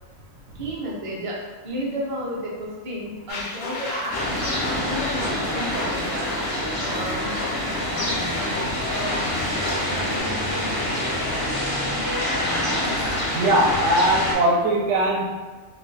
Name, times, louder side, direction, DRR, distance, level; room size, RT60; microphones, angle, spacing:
voice 1, 0.5-7.4 8.2-8.5, equal, 40° right, -4 dB, 0.5 m, -32 dB
sound 1, 3.3-10.2, left 2 dB, 80° left, 1.0 m, -34 dB
sound 2, 4.1-14.3, left 1 dB, 35° left, 0.3 m, -26 dB
voice 2, 13.3-15.2, right 1 dB, 70° right, -2 dB, 0.9 m, -20 dB
2.5 x 2.2 x 3.9 m, 1.4 s
omnidirectional pair, 1.4 m